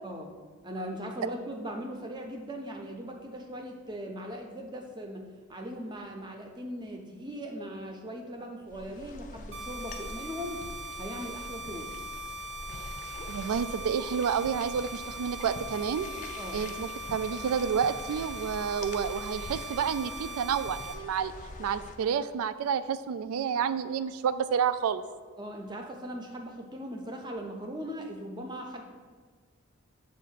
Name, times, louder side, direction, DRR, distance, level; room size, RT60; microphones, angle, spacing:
voice 1, 0.0-0.4 0.6-5.2 5.5-10.7 11.0-11.9 16.4-16.6 25.4-28.8, equal, 20° right, 2 dB, 0.6 m, -39 dB
sound 1, 8.7-22.0, left 2 dB, 35° left, 0.4 m, -44 dB
sound 2, 9.5-20.9, right 1 dB, 60° right, 0.7 m, -41 dB
voice 2, 13.3-16.1 16.5-21.3 21.6-25.0, right 7 dB, 80° right, 13 dB, 0.3 m, -30 dB
7.1 x 2.5 x 5.6 m, 1.5 s
head